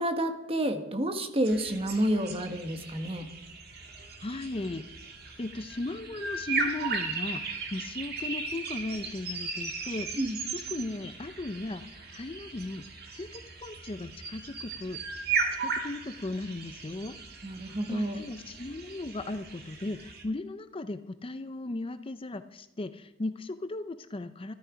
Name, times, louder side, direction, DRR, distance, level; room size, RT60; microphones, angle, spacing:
voice 1, 0.0-3.3 10.1-10.4 17.4-18.2, right 1 dB, 30° right, 7 dB, 1.3 m, -29 dB
sound 1, 1.4-20.2, right 4 dB, 50° right, 2.2 m, -37 dB
voice 2, 4.2-4.8 5.4-10.1 10.7-11.8 12.1-12.8 13.1-15.2 15.6-17.2 17.9-24.5, left 2 dB, 25° left, 11 dB, 0.5 m, -36 dB
13.5 x 13.0 x 5.1 m, 1.0 s
head